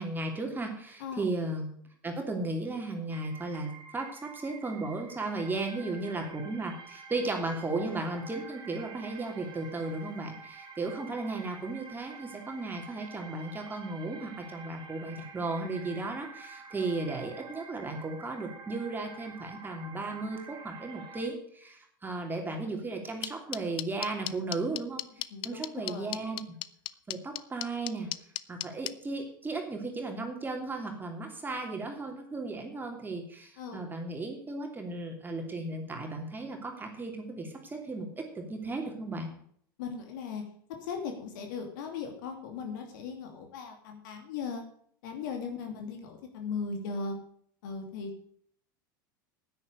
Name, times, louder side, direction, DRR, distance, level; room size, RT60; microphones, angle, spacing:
voice 1, 0.0-1.7 2.0-25.0 25.4-26.4 27.1-28.1 28.5-38.1 38.3-39.3, right 2 dB, 15° right, 2 dB, 3.0 m, -35 dB
sound 1, 3.1-21.3, right 5 dB, 40° right, 2.7 m, -48 dB
sound 2, 23.2-28.9, left 16 dB, 45° left, 0.7 m, -34 dB
voice 2, 25.3-26.2 33.6-33.8 39.8-40.4 40.9-44.6 45.0-47.2 47.6-48.1, left 5 dB, 65° left, 4 dB, 2.7 m, -38 dB
9.9 x 9.7 x 6.6 m, 0.62 s
hypercardioid pair, 85°, 11 cm